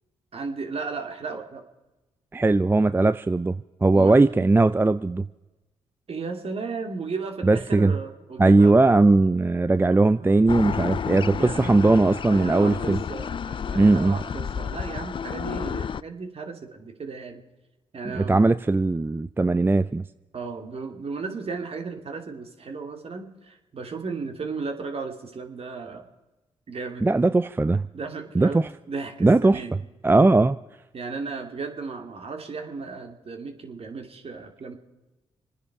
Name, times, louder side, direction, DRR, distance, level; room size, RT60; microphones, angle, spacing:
voice 1, 0.3-1.6 3.9-4.1 6.1-8.8 9.9-10.4 11.3-17.4 17.9-18.4 20.3-26.0 26.7-27.1 27.9-29.8 30.9-34.8, right 4 dB, 50° right, 4 dB, 2.7 m, -35 dB
voice 2, 2.3-5.3 7.4-7.9 8.4-13.0 13.7-14.2 18.1-20.0 27.0-27.8 28.4-28.7 29.2-29.6 30.0-30.6, right 2 dB, 15° right, 14 dB, 0.5 m, -19 dB
sound 1, 10.5-16.0, left 7 dB, 40° left, 0.4 m, -31 dB
26.0 x 10.0 x 4.7 m, 1.0 s
supercardioid pair, 55°, 13 cm